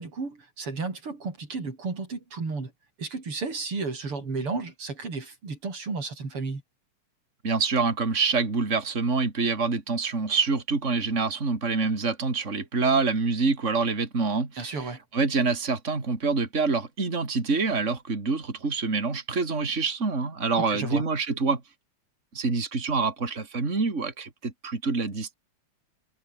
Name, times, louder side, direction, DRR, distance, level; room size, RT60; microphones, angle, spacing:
voice 1, 0.0-2.7 3.0-6.6 14.6-15.0 20.6-21.0, right 4 dB, 85° right, 5.7 m, -33 dB
voice 2, 7.4-21.6 22.3-25.3, right 4 dB, 30° right, 3.6 m, -26 dB
omnidirectional pair, 2.4 m